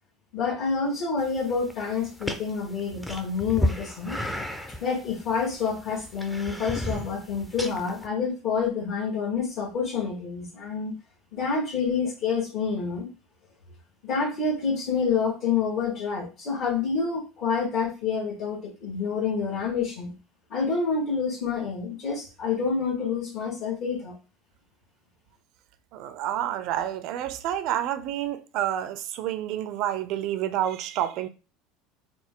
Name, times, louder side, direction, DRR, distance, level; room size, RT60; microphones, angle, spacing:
voice 1, 0.3-4.2 4.8-10.9 11.3-13.1 14.0-20.1 20.5-24.2, left 5 dB, 55° left, 1.4 m, -28 dB
sound 1, 1.2-8.1, left 1 dB, 5° left, 0.5 m, -34 dB
voice 2, 25.9-31.3, right 11 dB, 60° right, 0.5 m, -29 dB
4.2 x 2.2 x 3.7 m
supercardioid pair, 125°, 0 cm